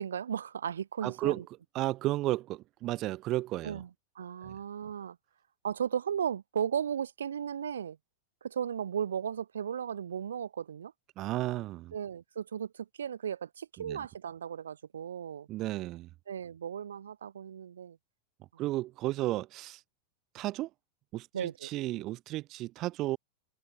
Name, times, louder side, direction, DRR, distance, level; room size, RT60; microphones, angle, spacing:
voice 1, 0.0-1.4 3.6-3.9 4.1-5.2 5.6-8.0 8.4-10.9 11.9-15.5 16.3-18.0 18.5-18.6 21.3-21.7, right 8 dB, 65° right, 6.1 m, -35 dB
voice 2, 1.0-1.4 1.7-3.8 4.4-4.5 11.2-11.9 13.8-14.0 15.5-16.1 18.6-19.8 20.3-20.7 21.1-23.2, right 17 dB, 35° right, 4.9 m, -33 dB
figure-of-eight pair, 90°, 0 cm